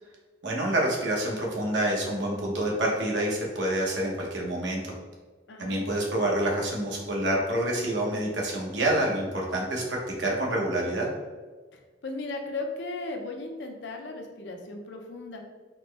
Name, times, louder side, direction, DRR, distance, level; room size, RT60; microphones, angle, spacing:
voice 1, 0.4-4.9 5.6-11.1, right 1 dB, 80° right, -2 dB, 0.9 m, -27 dB
voice 2, 5.5-5.8 11.7-15.4, left 2 dB, 75° left, 3 dB, 0.6 m, -36 dB
4.1 x 2.1 x 3.3 m, 1.4 s
head